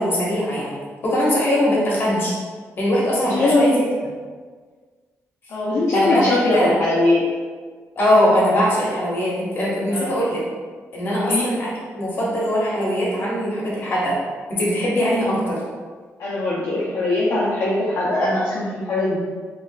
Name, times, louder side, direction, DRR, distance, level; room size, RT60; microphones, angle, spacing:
voice 1, 0.0-2.3 2.8-3.9 5.9-6.8 8.0-10.4 10.9-14.2 14.5-15.6, equal, 45° left, -6 dB, 1.2 m, -21 dB
voice 2, 3.3-3.8 5.5-7.2 9.9-10.2 11.2-11.5 16.2-19.2, left 2 dB, 60° left, -7 dB, 0.6 m, -21 dB
3.5 x 3.1 x 2.4 m, 1.5 s
cardioid pair, 125°, 5 cm